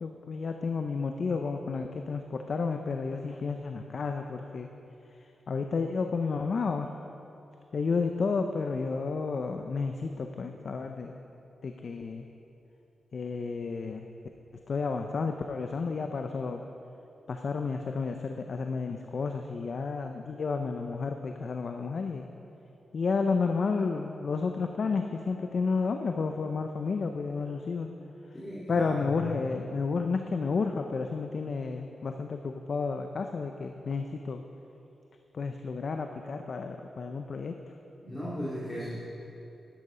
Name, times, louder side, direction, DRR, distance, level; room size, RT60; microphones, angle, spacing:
voice 1, 0.0-4.7 5.5-6.9 7.7-11.1 11.6-12.2 13.1-14.1 14.7-16.6 17.3-22.3 22.9-27.9 28.7-34.4 35.3-37.5, left 4 dB, 55° left, 5 dB, 0.5 m, -31 dB
voice 2, 28.3-29.3 38.0-38.9, equal, 20° left, -10 dB, 2.6 m, -37 dB
12.0 x 11.0 x 5.0 m, 2.9 s
wide cardioid pair, 120°, 0 cm